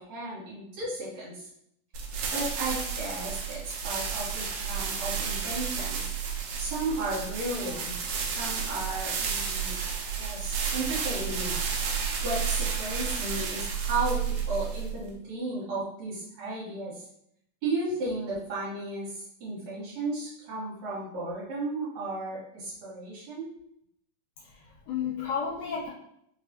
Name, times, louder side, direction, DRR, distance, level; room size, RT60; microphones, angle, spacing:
voice 1, 0.0-1.5 2.3-6.1 6.6-8.0 8.2-9.8 10.2-11.6 12.2-17.0 17.6-23.5, right 2 dB, 65° right, -9 dB, 2.4 m, -34 dB
sound 1, 1.9-15.1, right 6 dB, 80° right, 1.7 m, -31 dB
voice 2, 24.4-25.9, left 6 dB, 70° left, -7 dB, 2.3 m, -32 dB
5.1 x 2.3 x 2.8 m, 0.74 s
omnidirectional pair, 3.8 m